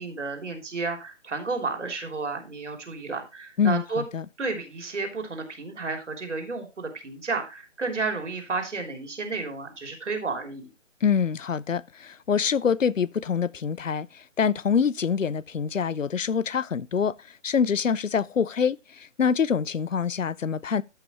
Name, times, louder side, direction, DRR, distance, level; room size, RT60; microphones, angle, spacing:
voice 1, 0.0-4.0 4.4-10.7, right 3 dB, 70° right, 3.2 m, -32 dB
voice 2, 3.6-4.2 11.0-17.1 17.4-20.8, left 6 dB, 90° left, 0.6 m, -25 dB
14.0 x 5.6 x 3.0 m
figure-of-eight pair, 145°, 37 cm